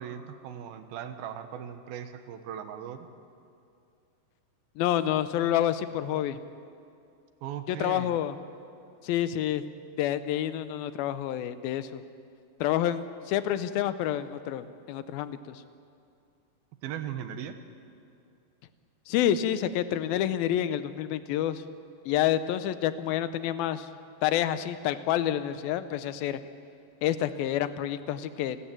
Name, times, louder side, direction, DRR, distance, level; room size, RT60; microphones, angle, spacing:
voice 1, 0.0-3.1 7.4-8.2 16.8-17.6, right 9 dB, 85° right, 9 dB, 3.0 m, -38 dB
voice 2, 4.8-6.4 7.7-8.4 9.0-9.6 10.0-12.0 12.6-15.6 19.1-21.6 22.1-23.9 24.2-26.4 27.0-28.7, left 11 dB, 85° left, 13 dB, 2.6 m, -28 dB
29.5 x 12.5 x 9.1 m, 2.4 s
omnidirectional pair, 4.2 m